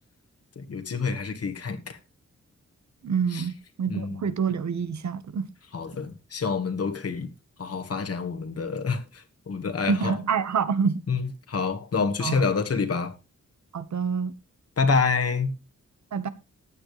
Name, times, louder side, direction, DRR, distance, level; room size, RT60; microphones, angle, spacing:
voice 1, 0.5-2.0 3.3-3.4 3.9-4.2 5.7-7.3 7.6-10.2 11.1-13.2 14.8-15.6, left 5 dB, 55° left, 1.5 m, -27 dB
voice 2, 3.0-5.5 9.9-11.0 12.2-12.4 13.7-14.3 16.1-16.3, right 6 dB, 70° right, 1.2 m, -27 dB
15.0 x 10.5 x 3.2 m
wide cardioid pair, 175°, 29 cm